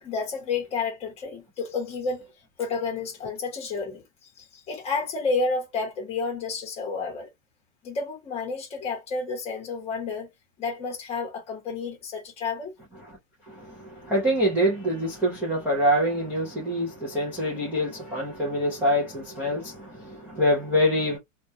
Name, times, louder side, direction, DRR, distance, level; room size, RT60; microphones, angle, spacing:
voice 1, 0.0-2.3 2.6-4.0 4.4-7.3 7.8-10.3 10.6-12.7, left 4 dB, 15° left, 0.8 m, -30 dB
voice 2, 13.5-21.2, equal, 5° right, 0.3 m, -25 dB
2.2 x 2.1 x 2.6 m
supercardioid pair, 150°, 39 cm